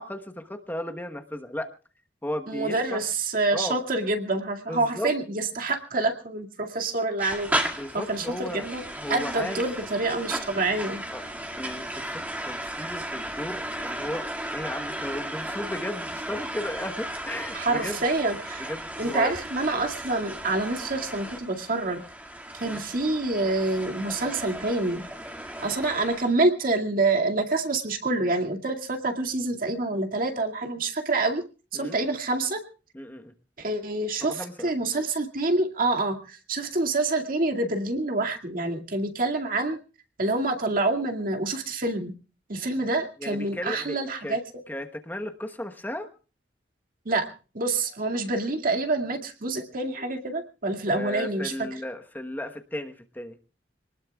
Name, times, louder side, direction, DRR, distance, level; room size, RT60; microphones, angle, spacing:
voice 1, 0.0-1.7 2.2-3.0 3.5-3.8 4.7-5.1 7.8-8.7 8.9-9.6 11.1-11.2 11.6-18.0 18.6-19.3 22.6-22.8 31.7-32.0 32.9-33.3 34.2-34.7 43.2-44.4 44.7-46.1 50.9-53.4, left 1 dB, 10° left, 5 dB, 1.1 m, -35 dB
voice 2, 2.5-7.5 7.9-8.8 9.1-11.0 17.5-18.7 19.0-22.0 22.5-25.0 25.6-31.4 31.7-32.6 33.6-39.8 40.2-42.1 42.5-44.4 47.1-47.3 47.5-51.7, right 2 dB, 50° right, 3 dB, 2.2 m, -27 dB
sound 1, 7.2-26.3, right 1 dB, 10° right, 2.1 m, -35 dB
26.0 x 19.5 x 2.3 m, 0.35 s
head